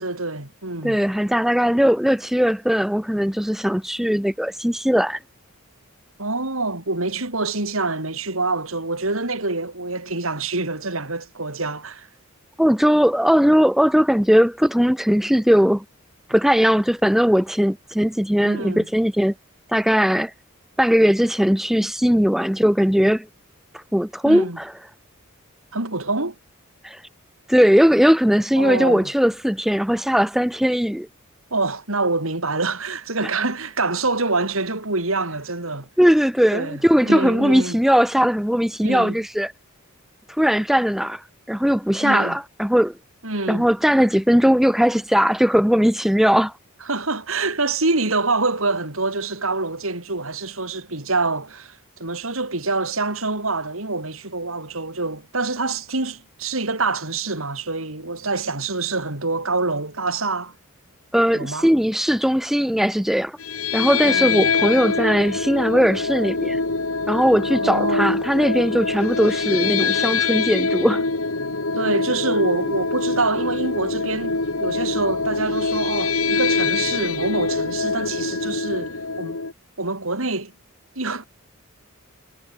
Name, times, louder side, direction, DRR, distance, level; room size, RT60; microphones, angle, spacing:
voice 1, 0.0-1.0 6.2-12.1 18.4-18.9 24.2-24.6 25.7-26.3 28.6-29.1 31.5-35.9 36.5-37.8 38.8-39.2 42.0-42.4 43.2-43.7 46.9-60.5 61.3-61.7 64.0-64.5 67.5-68.2 71.7-79.4 79.8-80.5 81.0-81.3, right 3 dB, 70° right, 4.3 m, -26 dB
voice 2, 0.8-5.2 12.6-15.8 16.3-19.3 19.7-20.3 20.8-23.3 23.7-24.7 26.8-27.0 27.5-31.1 36.0-39.5 40.4-42.9 43.5-46.5 61.1-63.4 63.7-66.6 67.1-71.0, equal, ahead, 0.6 m, -19 dB
sound 1, 63.4-79.5, left 4 dB, 75° left, 2.6 m, -24 dB
head